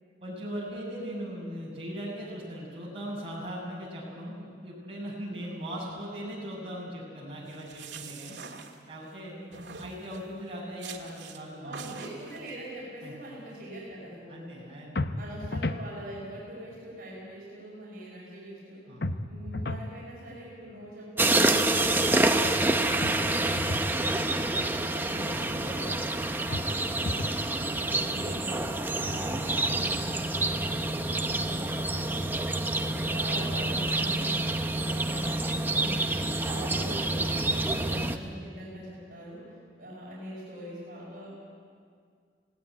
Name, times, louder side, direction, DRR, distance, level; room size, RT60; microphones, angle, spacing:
voice 1, 0.2-8.4 8.9-9.3 9.8-11.9 13.0-13.2 14.3-15.2 18.9-19.1 25.0-25.9 27.6-28.4 28.8-30.0, equal, 30° right, -5 dB, 6.4 m, -39 dB
sound 1, 7.5-9.2 9.5-10.3 10.8-11.4 11.7-12.5, right 6 dB, 90° right, 1.8 m, -45 dB
voice 2, 9.3-9.8 11.6-14.5 15.2-18.9 19.3-24.6 25.4-26.1 30.6-41.3, equal, 50° right, -5 dB, 5.3 m, -43 dB
sound 2, 15.0-15.9 19.0-19.9 23.0-23.9 26.5-27.4, left 2 dB, 60° left, 0.8 m, -33 dB
sound 3, 21.2-38.2, right 2 dB, 10° right, 0.8 m, -27 dB
18.5 x 17.5 x 9.4 m, 2.1 s
head